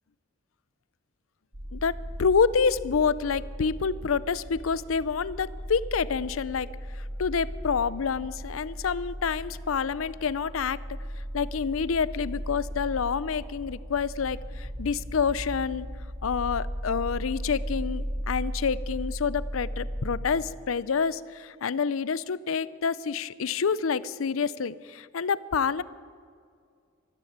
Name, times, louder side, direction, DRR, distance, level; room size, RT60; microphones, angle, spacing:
sound 1, 1.5-20.2, equal, 70° right, 3.1 m, -36 dB
voice 1, 1.7-6.7 6.9-10.8 11.3-15.9 16.2-25.8, left 6 dB, 85° left, 18 dB, 0.5 m, -28 dB
13.5 x 12.5 x 8.6 m, 2.2 s
head